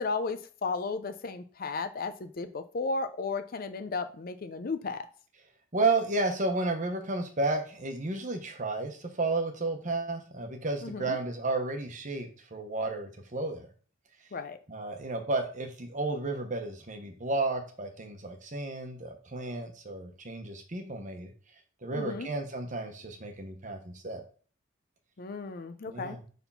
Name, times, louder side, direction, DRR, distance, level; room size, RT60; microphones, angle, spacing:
voice 1, 0.0-5.1 10.8-11.2 14.3-14.6 21.9-22.3 25.2-26.2, left 4 dB, 50° left, 0.5 m, -34 dB
voice 2, 5.7-13.7 14.7-21.3 21.8-24.2 25.9-26.2, right 3 dB, 40° right, 1.0 m, -32 dB
4.7 x 3.6 x 5.6 m
head